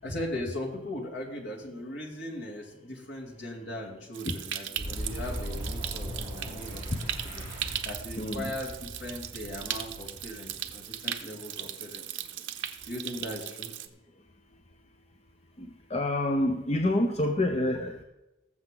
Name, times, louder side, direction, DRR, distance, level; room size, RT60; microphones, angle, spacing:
voice 1, 0.0-8.7 9.0-12.1 12.9-13.7, left 1 dB, 70° left, -1 dB, 2.8 m, -39 dB
Stream, 4.1-13.9, right 11 dB, 75° right, 0.8 m, -38 dB
Boom, 4.7-11.3, equal, 50° left, 5.1 m, -39 dB
voice 2, 8.2-8.5 15.6-18.0, left 1 dB, 35° left, 5 dB, 0.7 m, -28 dB
19.0 x 7.3 x 3.9 m, 0.97 s
head